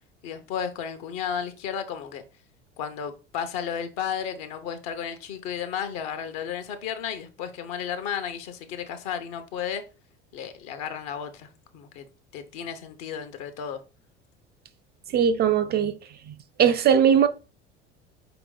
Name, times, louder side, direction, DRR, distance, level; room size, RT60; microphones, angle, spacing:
voice 1, 0.2-2.2 2.8-9.8 10.3-12.1 12.3-13.8, left 8 dB, 60° left, 0.9 m, -33 dB
voice 2, 15.1-15.9 16.6-17.3, right 8 dB, 30° right, 0.4 m, -19 dB
4.5 x 2.9 x 3.7 m
hypercardioid pair, 70°, 33 cm